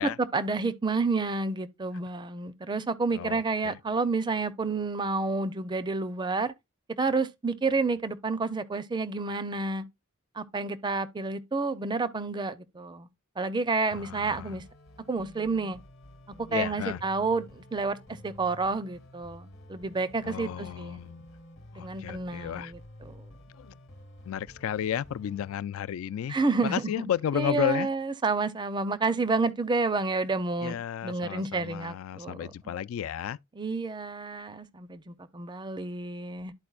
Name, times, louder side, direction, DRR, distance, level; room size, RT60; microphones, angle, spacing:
voice 1, 0.0-6.5 7.0-9.8 10.4-13.1 13.4-14.6 15.1-15.8 16.4-18.0 18.2-21.0 21.7-23.3 26.3-30.8 31.0-32.5 33.6-36.5, right 3 dB, 20° right, 0.5 m, -30 dB
voice 2, 3.1-3.7 13.9-14.6 16.5-17.0 20.2-21.2 21.7-22.7 23.5-23.8 24.2-26.3 26.6-27.9 30.6-33.4, left 9 dB, 80° left, 0.3 m, -33 dB
sound 1, 13.9-25.5, left 1 dB, 60° left, 1.0 m, -51 dB
12.0 x 4.3 x 2.3 m
head